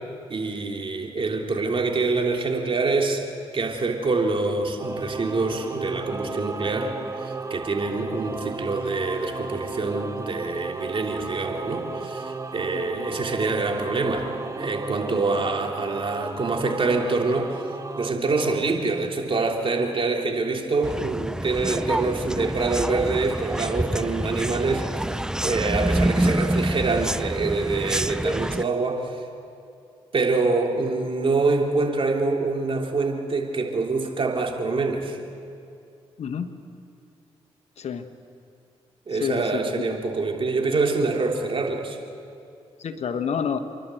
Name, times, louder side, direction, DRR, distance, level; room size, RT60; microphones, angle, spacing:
voice 1, 0.3-3.2 3.5-6.9 7.2-17.6 18.0-29.2 30.1-35.2 39.1-42.0, right 3 dB, 50° right, 1 dB, 3.2 m, -25 dB
Singing / Musical instrument, 4.8-18.1, right 3 dB, 25° right, 1.2 m, -34 dB
voice 2, 12.7-13.1 36.2-36.5 37.8-38.1 39.1-39.9 42.8-43.6, left 7 dB, 65° left, 8 dB, 1.3 m, -29 dB
sound 1, 20.8-28.6, right 1 dB, 5° right, 0.5 m, -26 dB
29.0 x 11.5 x 7.8 m, 2.5 s
supercardioid pair, 50°, 12 cm